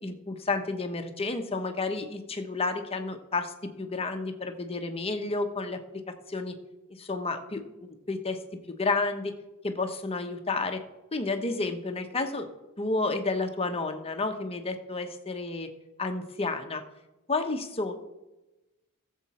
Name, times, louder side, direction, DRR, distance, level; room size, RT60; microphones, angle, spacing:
voice 1, 0.0-5.8 6.3-6.6 7.0-8.4 8.7-9.3 9.6-10.8 11.1-12.5 12.8-15.7 16.0-16.8 17.3-18.0, left 3 dB, 25° left, 6 dB, 1.0 m, -31 dB
14.0 x 7.4 x 4.3 m, 1.0 s
head